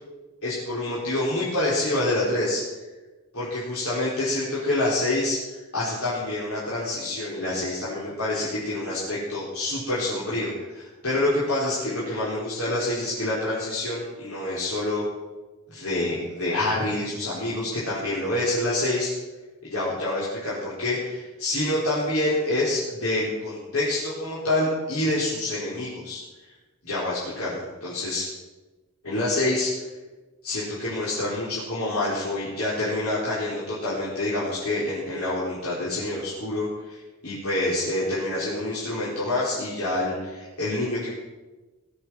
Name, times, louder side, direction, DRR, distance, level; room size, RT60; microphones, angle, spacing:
voice 1, 0.4-2.6 3.3-15.0 15.7-19.1 19.6-26.2 26.8-28.3 29.0-29.7 30.4-37.0 37.2-41.1, left 1 dB, 75° left, -8 dB, 4.4 m, -27 dB
18.5 x 8.2 x 7.6 m, 1.2 s
head